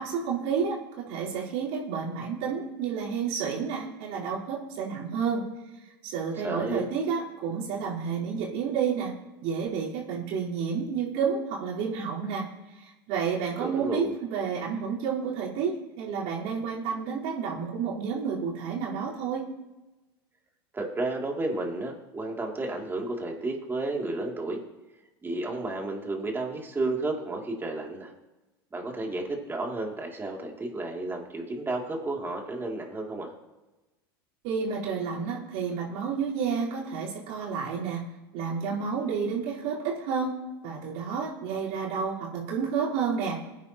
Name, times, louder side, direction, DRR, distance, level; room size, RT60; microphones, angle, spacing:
voice 1, 0.0-5.5 6.0-9.1 9.4-12.4 12.8-19.5 34.4-38.0 38.3-43.4, right 6 dB, 60° right, -6 dB, 4.1 m, -30 dB
voice 2, 6.4-6.8 13.6-14.1 20.7-24.6 25.2-28.1 28.7-33.3, right 2 dB, 15° right, 0 dB, 2.7 m, -32 dB
21.5 x 9.6 x 3.0 m, 1.1 s
hypercardioid pair, 95°, 13 cm